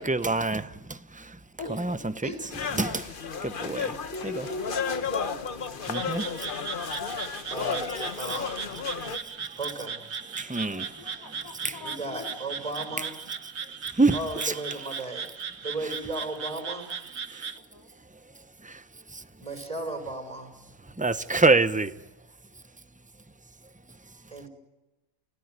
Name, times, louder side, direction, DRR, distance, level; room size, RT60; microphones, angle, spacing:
voice 1, 0.0-1.4 1.7-2.3 2.8-3.1 3.4-3.9 4.2-4.5 5.9-6.3 10.4-10.9 11.6-11.8 14.0-14.2 14.4-14.5 17.3-17.4 18.6-18.8 19.1-19.2 21.0-21.9, right 3 dB, 10° right, 0.5 m, -26 dB
voice 2, 1.6-2.2 10.7-12.4 17.5-17.9, left 3 dB, 75° left, 4.4 m, -44 dB
voice 3, 2.2-2.6 3.6-5.3 7.5-8.8 9.5-10.0 11.8-13.2 14.1-15.3 15.6-16.9 19.4-20.5 24.3-24.5, right 2 dB, 25° right, 6.6 m, -36 dB
sound 1, 2.5-9.2, left 6 dB, 40° left, 1.1 m, -33 dB
Frog, 5.8-17.6, right 6 dB, 55° right, 1.4 m, -38 dB
29.5 x 17.0 x 9.6 m
omnidirectional pair, 1.5 m